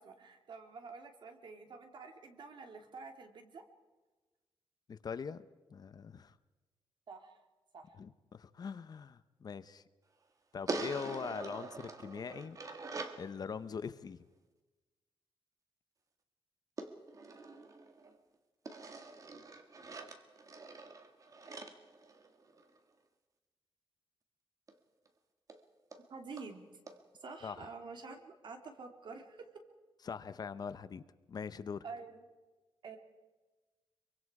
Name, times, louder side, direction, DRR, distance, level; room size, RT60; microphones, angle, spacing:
voice 1, 0.0-3.7 7.1-7.4 7.7-7.9 11.2-11.4 26.1-26.7 27.2-29.5 31.8-32.2 32.8-33.0, right 4 dB, 55° right, 5 dB, 2.6 m, -48 dB
voice 2, 4.9-6.4 8.0-9.8 10.5-12.6 13.2-14.2 27.4-27.7 30.0-31.0 31.3-31.8, left 6 dB, 45° left, 14 dB, 0.7 m, -42 dB
sound 1, 10.7-13.3 16.8-18.2 18.6-22.8 24.7-24.8 25.1-25.2 25.5-25.6 25.9-26.0 26.4-26.5 26.9-27.0, right 3 dB, 35° right, 1.9 m, -44 dB
25.0 x 24.0 x 4.8 m, 1.2 s
wide cardioid pair, 145°, 9 cm